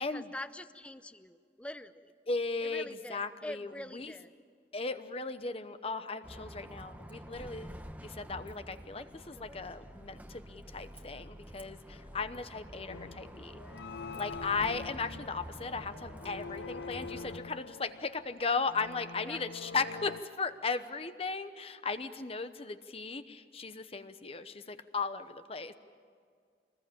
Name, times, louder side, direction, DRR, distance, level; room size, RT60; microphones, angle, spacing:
voice 1, 0.1-2.1 2.6-4.3 19.2-19.4, left 1 dB, 5° left, 12 dB, 0.7 m, -44 dB
voice 2, 2.3-4.1 4.7-7.7 8.0-13.6 14.2-25.7, left 4 dB, 35° left, 11 dB, 0.9 m, -36 dB
Bus, 6.2-17.4, equal, 10° right, 1.0 m, -48 dB
sound 1, 12.9-20.2, left 5 dB, 70° left, 0.6 m, -45 dB
25.0 x 20.5 x 8.6 m, 2.1 s
head